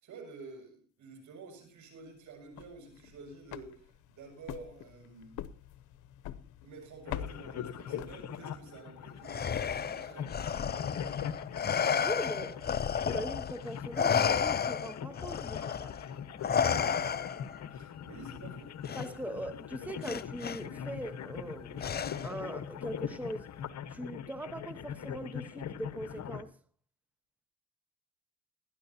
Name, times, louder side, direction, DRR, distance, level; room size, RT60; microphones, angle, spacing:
voice 1, 0.0-5.4 6.6-10.3 17.7-18.8, right 3 dB, 75° right, 6.8 m, -50 dB
sound 1, 2.4-8.7, left 11 dB, 85° left, 0.8 m, -45 dB
sound 2, 7.1-26.4, left 8 dB, 65° left, 1.3 m, -42 dB
Respiratory sounds, 9.3-13.6 14.0-17.6 18.9-19.1 20.0-20.6 21.8-22.4, left 7 dB, 35° left, 0.6 m, -31 dB
voice 2, 12.0-12.7 13.0-16.0 19.0-23.5 23.9-26.5, right 1 dB, 5° right, 1.1 m, -41 dB
20.0 x 13.0 x 2.8 m
cardioid pair, 90°, 30 cm